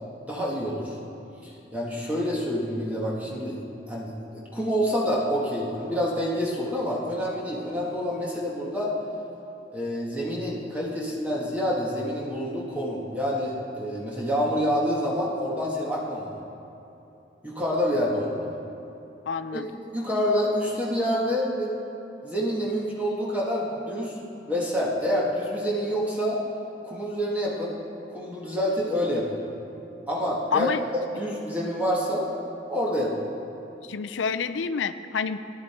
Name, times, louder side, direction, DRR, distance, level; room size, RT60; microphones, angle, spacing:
voice 1, 0.2-1.0 1.4-3.6 3.9-8.9 9.7-16.4 17.4-18.5 19.5-19.6 19.9-21.7 22.2-24.2 24.5-26.4 26.8-27.7 28.1-29.4 30.1-32.3 32.7-33.1, equal, 10° right, -5 dB, 1.6 m, -27 dB
voice 2, 19.3-19.7 30.5-30.8 33.9-35.4, left 5 dB, 85° left, 11 dB, 0.5 m, -28 dB
15.0 x 11.0 x 4.4 m, 3.0 s
head